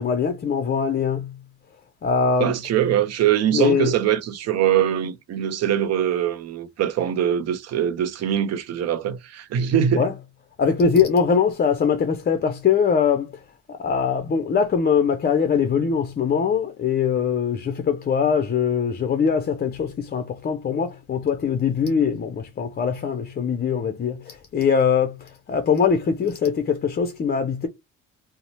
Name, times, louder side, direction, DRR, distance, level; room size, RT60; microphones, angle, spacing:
voice 1, 0.0-1.4 2.0-2.6 3.5-3.9 10.0-10.1 10.6-13.3 13.7-27.7, left 6 dB, 35° left, 0.5 m, -22 dB
voice 2, 2.4-10.1, right 10 dB, 60° right, 0.5 m, -22 dB
2.6 x 2.0 x 3.0 m
cardioid pair, 90°, 30 cm